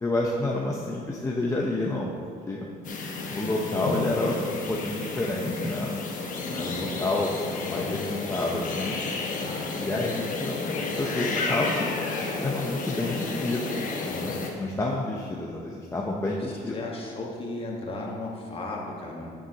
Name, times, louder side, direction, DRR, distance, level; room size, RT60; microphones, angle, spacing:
voice 1, 0.0-2.1 2.4-2.7 3.3-6.0 6.6-7.3 7.6-9.0 9.8-14.3 14.6-16.7, left 2 dB, 20° left, -3 dB, 0.8 m, -29 dB
sound 1, 2.8-14.5, left 3 dB, 50° left, 1.2 m, -31 dB
voice 2, 6.4-6.8 9.4-9.8 16.3-16.4 16.7-19.3, left 2 dB, 35° left, -1 dB, 1.7 m, -35 dB
11.0 x 7.3 x 3.0 m, 2.2 s
cardioid pair, 110°, 17 cm